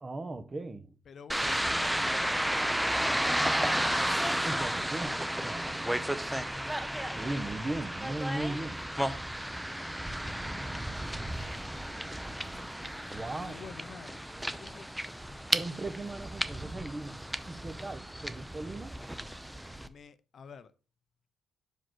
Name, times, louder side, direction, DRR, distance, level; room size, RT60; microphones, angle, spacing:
voice 1, 0.0-1.0 4.4-6.2 7.1-8.8 13.1-13.7 15.5-19.0, right 2 dB, 25° right, 0.9 m, -38 dB
voice 2, 1.1-3.0 5.8-6.9 13.3-15.0 15.7-15.8 19.8-20.7, left 6 dB, 55° left, 0.6 m, -51 dB
sound 1, 1.3-19.9, right 1 dB, 5° right, 0.6 m, -33 dB
5.0 x 4.5 x 6.1 m
cardioid pair, 90°, 0 cm